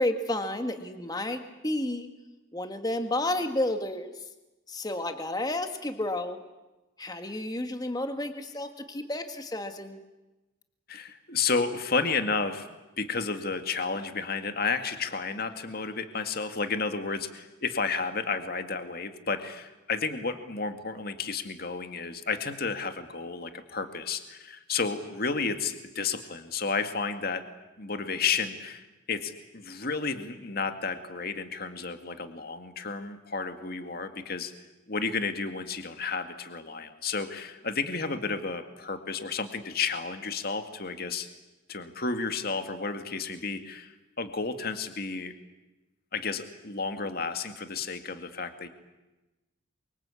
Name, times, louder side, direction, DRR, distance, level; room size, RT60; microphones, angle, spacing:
voice 1, 0.0-2.1 2.5-4.2 4.7-6.4 7.0-10.0, left 1 dB, 20° left, 6 dB, 1.8 m, -31 dB
voice 2, 10.9-12.7 13.0-27.4 27.8-34.5 34.9-41.3 41.7-45.3 46.1-48.7, left 4 dB, 45° left, 7 dB, 2.1 m, -32 dB
28.0 x 24.5 x 8.5 m, 1.1 s
head